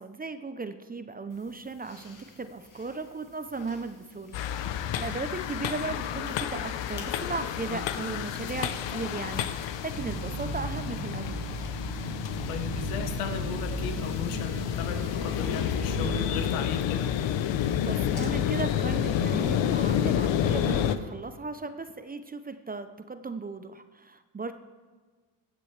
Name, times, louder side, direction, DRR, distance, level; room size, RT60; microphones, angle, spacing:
voice 1, 0.0-11.4 17.6-24.5, right 4 dB, 20° right, 10 dB, 0.6 m, -36 dB
sound 1, 1.3-18.3, left 3 dB, 40° left, 2.0 m, -54 dB
sound 2, 4.3-21.0, left 10 dB, 60° left, 0.8 m, -30 dB
sound 3, 9.9-16.5, right 4 dB, 35° right, 2.1 m, -37 dB
voice 2, 12.5-17.1, left 7 dB, 80° left, 7 dB, 1.2 m, -36 dB
15.5 x 6.8 x 3.3 m, 1.4 s
supercardioid pair, 70°, 50 cm